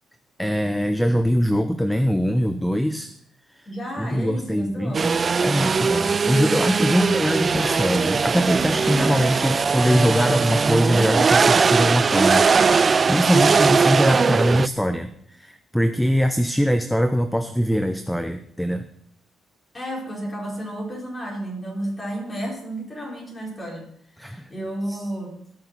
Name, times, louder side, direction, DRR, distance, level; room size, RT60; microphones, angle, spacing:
voice 1, 0.4-3.1 4.0-12.5 12.8-15.1 15.4-18.9 24.2-24.5 24.9-25.0, equal, 5° left, 9 dB, 0.7 m, -22 dB
voice 2, 3.7-5.1 13.4-13.7 19.7-23.8 24.3-25.4, right 1 dB, 25° left, -2 dB, 4.6 m, -32 dB
sound 1, 4.9-14.7, right 5 dB, 35° right, 0.3 m, -20 dB
17.5 x 6.8 x 4.1 m, 0.67 s
cardioid pair, 90°, 0 cm